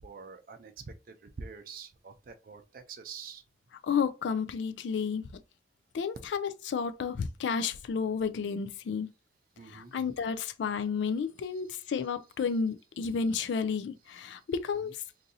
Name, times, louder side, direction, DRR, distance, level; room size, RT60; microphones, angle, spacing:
voice 1, 0.0-3.4 9.6-9.9 11.7-11.8 14.8-14.9, right 5 dB, 55° right, 0.4 m, -46 dB
voice 2, 3.8-5.2 5.9-9.1 9.7-14.9, left 6 dB, 90° left, 0.4 m, -31 dB
3.9 x 2.6 x 2.7 m
head